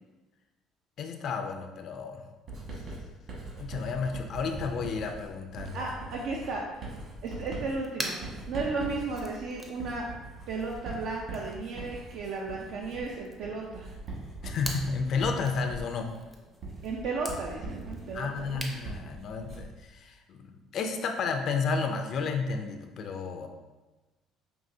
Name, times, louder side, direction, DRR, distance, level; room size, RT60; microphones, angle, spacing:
voice 1, 1.0-2.2 3.5-5.9 14.4-16.2 18.1-23.5, left 5 dB, 50° left, 5 dB, 0.4 m, -32 dB
Writing, 2.5-19.8, right 2 dB, 45° right, 1.5 m, -42 dB
voice 2, 5.7-6.6 7.2-8.1 8.5-10.1 10.5-13.9 16.8-18.6, right 3 dB, 70° right, -1 dB, 0.4 m, -34 dB
sound 1, 6.8-18.9, right 1 dB, 10° right, 0.5 m, -45 dB
5.3 x 2.8 x 2.6 m, 1.2 s
cardioid pair, 150°, 0 cm